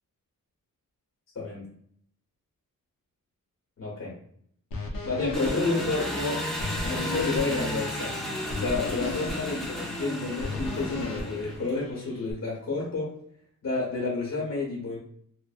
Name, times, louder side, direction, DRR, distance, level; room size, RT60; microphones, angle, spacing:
voice 1, 1.3-1.7 3.8-4.2 5.0-6.5 6.8-8.2 8.5-13.1 13.6-15.0, left 3 dB, 50° left, -5 dB, 1.0 m, -30 dB
sound 1, 4.7-12.3, left 3 dB, 75° left, 0.6 m, -37 dB
Engine, 5.3-11.8, equal, ahead, 0.7 m, -33 dB
2.6 x 2.1 x 2.4 m, 0.66 s
wide cardioid pair, 100°, 34 cm